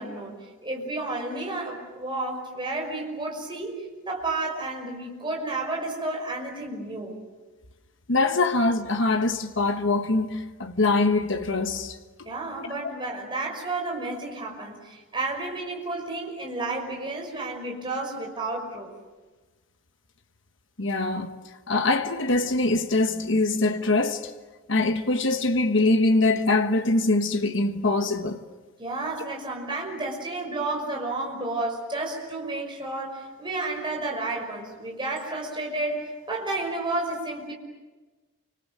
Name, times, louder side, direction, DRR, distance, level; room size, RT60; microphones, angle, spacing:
voice 1, 0.0-7.2 12.2-18.9 28.8-37.5, right 2 dB, 25° right, 5.8 m, -31 dB
voice 2, 8.1-12.3 20.8-21.3 21.7-24.3 24.7-28.4, left 2 dB, 65° left, 1.4 m, -23 dB
29.5 x 26.0 x 7.8 m
head